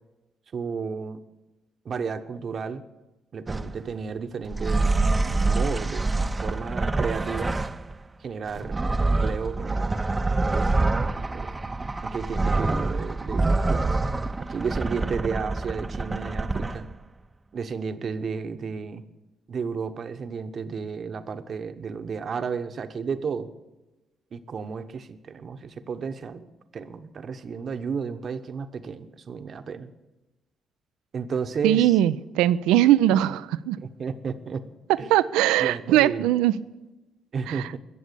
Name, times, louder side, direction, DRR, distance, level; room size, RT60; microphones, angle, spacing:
voice 1, 0.5-1.2 1.8-2.8 3.3-4.9 5.4-6.1 6.4-7.5 8.2-8.8 9.1-10.0 10.4-10.8 11.3-11.5 12.0-13.9 14.4-16.9 17.5-19.0 19.5-23.5 24.3-26.5 26.7-29.9 31.1-31.9 33.8-34.7 35.0-35.1 35.6-36.3 37.3-37.8, right 5 dB, 55° right, 9 dB, 1.0 m, -32 dB
sound 1, 3.5-3.8 4.4-7.9 8.5-16.9, right 3 dB, 25° right, 0.7 m, -26 dB
voice 2, 31.6-33.8 35.1-36.6 37.5-37.7, right 13 dB, 80° right, 16 dB, 0.4 m, -20 dB
21.0 x 7.2 x 6.9 m, 1.1 s
hypercardioid pair, 50°, 0 cm